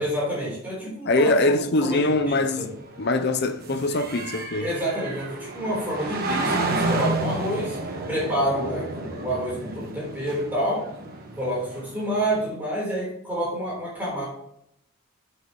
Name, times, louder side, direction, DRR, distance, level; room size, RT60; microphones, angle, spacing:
voice 1, 0.0-1.6 1.8-2.7 4.6-7.8 8.1-10.8 11.4-14.3, right 1 dB, 10° right, 3.7 m, -28 dB
voice 2, 1.1-2.7 3.0-4.7, left 2 dB, 50° left, 0.6 m, -23 dB
sound 1, 1.8-12.4, right 2 dB, 45° right, 1.3 m, -31 dB
11.0 x 6.6 x 3.1 m
head